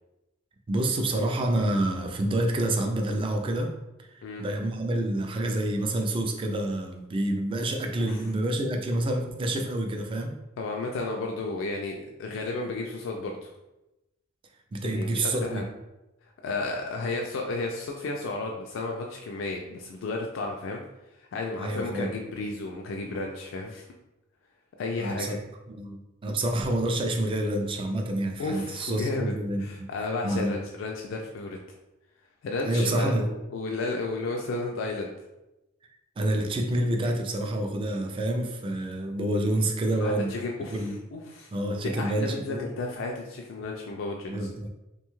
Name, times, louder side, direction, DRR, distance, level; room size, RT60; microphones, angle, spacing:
voice 1, 0.7-3.7 4.1-10.3 14.7-15.6 21.6-22.1 25.0-25.4 25.7-29.9 30.2-30.5 32.6-33.2 36.2-40.3 40.7-41.0 41.5-42.7 44.3-44.7, right 1 dB, 25° right, 3 dB, 0.3 m, -28 dB
voice 2, 10.6-13.5 14.8-15.6 16.2-20.8 21.2-23.8 24.8-25.4 28.4-31.6 32.4-35.1 39.9-41.5 41.8-44.5, left 3 dB, 80° left, 1 dB, 0.3 m, -33 dB
2.7 x 2.2 x 3.0 m, 0.96 s
head